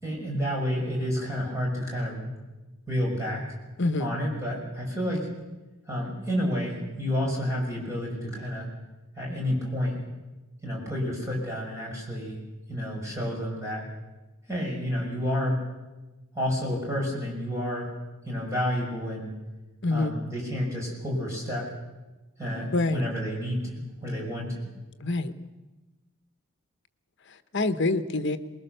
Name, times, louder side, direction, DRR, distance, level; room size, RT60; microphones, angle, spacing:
voice 1, 0.0-2.3 2.9-3.5 4.0-5.3 5.9-8.7 9.2-10.0 10.6-12.4 12.7-13.9 14.5-15.6 16.3-17.9 18.2-19.3 19.9-21.7 22.4-24.6, equal, 15° right, -2 dB, 6.1 m, -30 dB
voice 2, 3.8-4.1 19.8-20.2 22.7-23.0 25.0-25.3 27.5-28.4, left 2 dB, 55° left, 11 dB, 1.1 m, -25 dB
23.0 x 20.5 x 6.8 m, 1.1 s
head